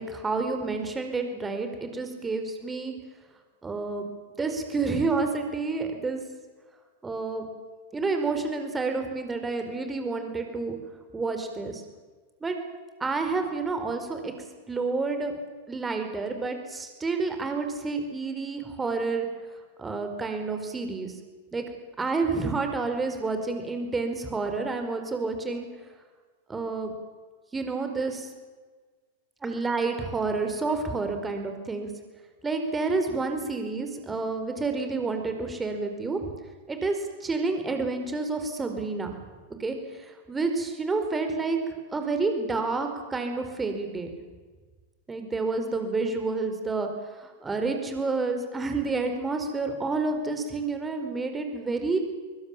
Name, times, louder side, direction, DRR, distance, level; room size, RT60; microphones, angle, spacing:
voice 1, 0.0-2.9 3.6-4.1 4.4-6.2 7.0-7.5 7.9-10.8 11.1-11.8 12.4-12.6 13.0-14.3 14.7-15.3 15.7-19.3 19.8-21.1 21.5-21.6 22.0-25.7 26.5-26.9 27.5-28.3 29.4-31.9 32.4-36.3 36.7-39.1 39.6-41.6 41.9-44.1 45.1-52.0, right 3 dB, 15° right, 6 dB, 4.7 m, -29 dB
25.5 x 23.5 x 7.4 m, 1.4 s
figure-of-eight pair, 90°, 0 cm